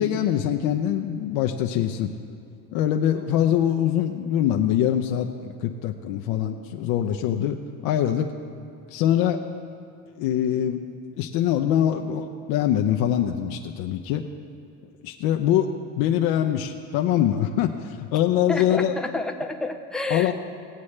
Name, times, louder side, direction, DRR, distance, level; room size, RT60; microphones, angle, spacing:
voice 1, 0.0-2.1 2.7-7.6 7.8-8.3 8.9-9.4 10.2-10.8 11.2-14.2 15.0-15.7 16.0-18.9 20.1-20.3, left 10 dB, 70° left, 4 dB, 0.7 m, -23 dB
voice 2, 18.5-20.3, left 2 dB, ahead, 4 dB, 0.4 m, -29 dB
18.5 x 8.4 x 3.3 m, 2.6 s
cardioid pair, 155°, 38 cm